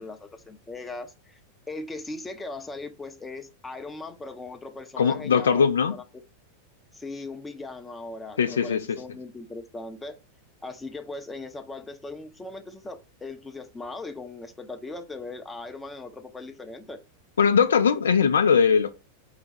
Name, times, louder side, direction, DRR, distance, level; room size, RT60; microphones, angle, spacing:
voice 1, 0.0-1.4 1.7-6.0 6.9-10.2 10.6-17.0, left 2 dB, 10° left, 0.6 m, -39 dB
voice 2, 5.0-6.0 8.4-9.0 17.4-18.9, left 6 dB, 65° left, 0.4 m, -20 dB
4.9 x 2.2 x 4.2 m
figure-of-eight pair, 90°, 0 cm